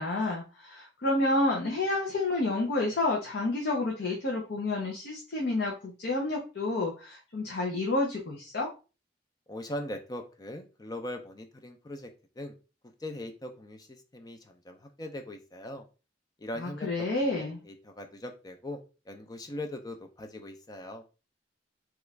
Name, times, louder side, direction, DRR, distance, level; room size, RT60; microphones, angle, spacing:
voice 1, 0.0-8.7 16.6-17.6, left 2 dB, 65° left, -2 dB, 0.7 m, -29 dB
voice 2, 9.5-12.1 12.4-12.5 12.8-15.8 16.4-16.9 17.2-18.8 19.1-21.0, left 1 dB, 20° left, 5 dB, 0.5 m, -40 dB
3.1 x 2.4 x 3.2 m, 0.32 s
head